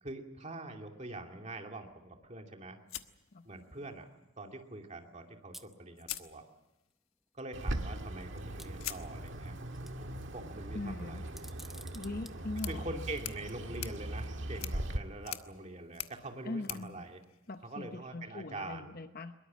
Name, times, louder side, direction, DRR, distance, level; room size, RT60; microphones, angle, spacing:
voice 1, 0.0-2.8 3.4-4.1 4.4-6.4 7.3-9.6 10.0-11.2 12.7-17.2 17.6-18.9, right 2 dB, 35° right, 3 dB, 2.5 m, -44 dB
sound 1, 2.9-4.0 5.4-5.5 6.0-7.0 8.8-18.0, left 12 dB, 85° left, 1.2 m, -47 dB
sound 2, 5.5-5.7 6.9-7.0 7.4-7.5 8.6-9.4 9.7-10.2 11.3-12.3 13.3-13.5, right 1 dB, ahead, 0.8 m, -51 dB
Bird, 7.5-15.0, right 1 dB, 60° right, 1.8 m, -40 dB
voice 2, 10.7-11.2 11.9-12.9 16.4-17.0 17.5-19.3, left 2 dB, 45° left, 8 dB, 0.9 m, -41 dB
23.0 x 22.0 x 7.6 m, 1.0 s
head